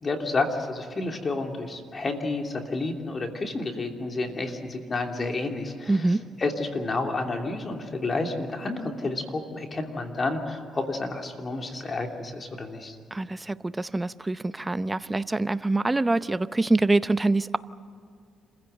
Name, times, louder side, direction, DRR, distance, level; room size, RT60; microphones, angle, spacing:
voice 1, 0.0-6.0 6.4-13.0, left 3 dB, 35° left, 3 dB, 2.9 m, -30 dB
voice 2, 5.9-6.2 13.1-17.6, right 2 dB, 15° right, 14 dB, 0.7 m, -25 dB
27.0 x 16.0 x 7.9 m, 2.5 s
cardioid pair, 90°, 0 cm